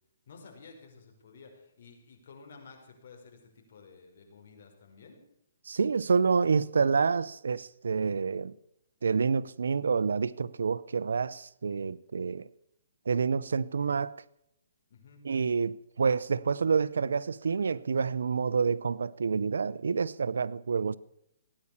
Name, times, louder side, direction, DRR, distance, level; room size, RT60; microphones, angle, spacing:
voice 1, 0.3-5.2 14.9-15.2, left 4 dB, 60° left, 5.4 m, -52 dB
voice 2, 5.7-8.5 9.0-12.5 13.1-14.1 15.2-21.0, right 5 dB, 85° right, 0.7 m, -28 dB
17.5 x 10.0 x 7.2 m
hypercardioid pair, 150°, 0 cm